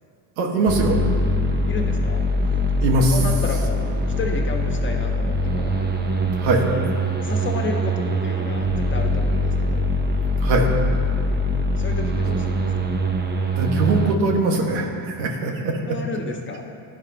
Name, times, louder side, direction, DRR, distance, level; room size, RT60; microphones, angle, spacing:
voice 1, 0.4-1.0 2.8-3.2 6.4-6.6 10.4-10.7 13.6-15.8, right 2 dB, 90° right, 1 dB, 1.7 m, -21 dB
sound 1, 0.7-14.2, equal, 20° right, 0.9 m, -23 dB
voice 2, 1.7-2.3 3.1-3.9 4.2-5.7 7.2-9.8 11.8-12.7 15.9-16.6, left 2 dB, 25° left, 2 dB, 1.4 m, -31 dB
16.0 x 10.5 x 3.0 m, 2.5 s
supercardioid pair, 100°, 50 cm